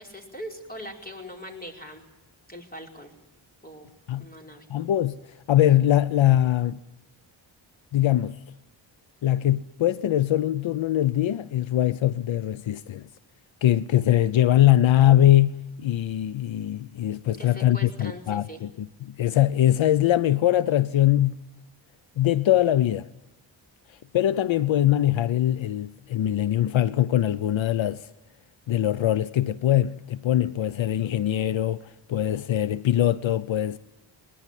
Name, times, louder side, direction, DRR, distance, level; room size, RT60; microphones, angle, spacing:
voice 1, 0.0-2.0 2.5-3.1 3.6-3.9 4.2-4.6 17.4-18.6, equal, 20° left, 5.0 m, -41 dB
voice 2, 4.7-5.2 5.5-6.8 7.9-8.4 9.2-13.0 13.6-21.4 22.2-23.1 24.1-28.1 28.7-33.8, left 12 dB, 80° left, 0.8 m, -22 dB
21.5 x 20.5 x 9.3 m
wide cardioid pair, 105°, 46 cm